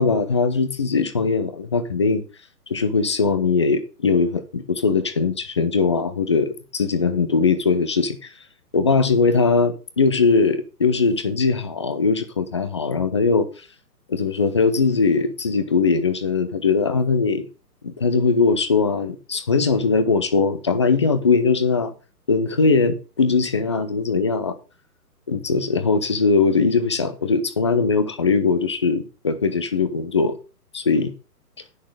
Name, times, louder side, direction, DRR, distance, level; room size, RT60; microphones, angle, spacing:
voice 1, 0.0-2.2 2.7-8.3 8.7-13.5 14.1-17.5 17.8-21.9 22.3-24.5 25.3-30.4 30.7-31.1, left 4 dB, 20° left, 0.5 m, -20 dB
10.0 x 6.4 x 4.8 m
figure-of-eight pair, 130°, 49 cm